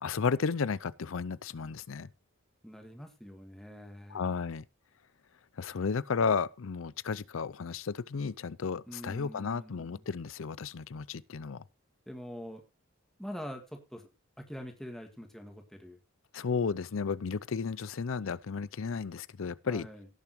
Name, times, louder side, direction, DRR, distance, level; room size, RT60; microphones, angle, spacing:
voice 1, 0.0-2.1 4.1-4.6 5.6-11.6 16.3-19.9, left 5 dB, 80° left, 0.5 m, -33 dB
voice 2, 2.6-4.4 8.9-10.0 12.1-12.6 13.2-14.1 14.4-16.0 19.7-20.1, equal, ahead, 2.0 m, -44 dB
17.5 x 7.0 x 3.1 m
head